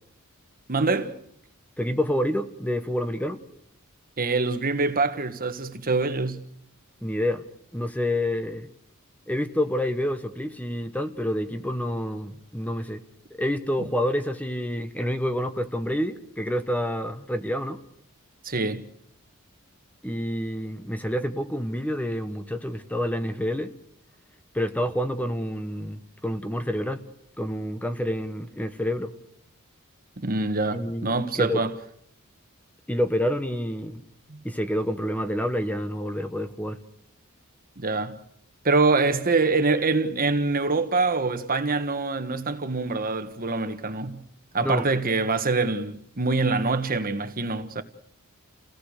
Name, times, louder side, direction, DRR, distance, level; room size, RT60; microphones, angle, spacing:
voice 1, 0.7-1.1 4.2-6.4 18.4-18.8 30.2-31.7 34.3-34.4 37.8-38.2 38.6-44.2 44.5-47.8, right 3 dB, 45° right, 1.4 m, -25 dB
voice 2, 1.8-3.4 7.0-7.4 7.7-8.7 9.3-13.0 13.4-17.8 20.0-23.7 24.5-27.0 27.4-29.1 30.7-31.6 32.9-34.0 34.4-36.8 44.6-44.9, equal, 5° left, 1.1 m, -28 dB
29.5 x 17.5 x 6.6 m
head